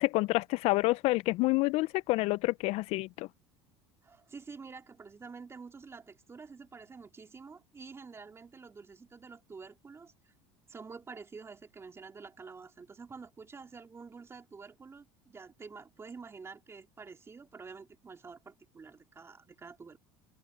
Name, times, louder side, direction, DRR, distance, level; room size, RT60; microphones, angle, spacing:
voice 1, 0.0-3.3, left 21 dB, 60° left, 0.4 m, -28 dB
voice 2, 4.0-10.3 10.7-20.0, right 4 dB, 20° right, 3.0 m, -48 dB
open air
supercardioid pair, 105°, 12 cm